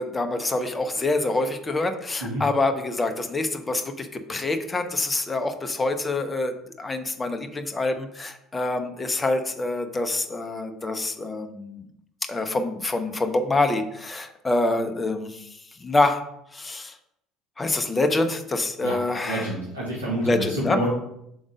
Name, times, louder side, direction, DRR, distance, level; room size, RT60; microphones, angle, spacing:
voice 1, 0.0-11.9 12.2-15.5 15.8-16.2 16.5-17.0 17.6-19.5 20.2-20.8, left 2 dB, 20° left, 6 dB, 0.8 m, -26 dB
voice 2, 19.2-20.9, right 1 dB, 80° right, -5 dB, 1.2 m, -28 dB
6.2 x 3.7 x 5.1 m, 0.77 s
figure-of-eight pair, 60°, 0 cm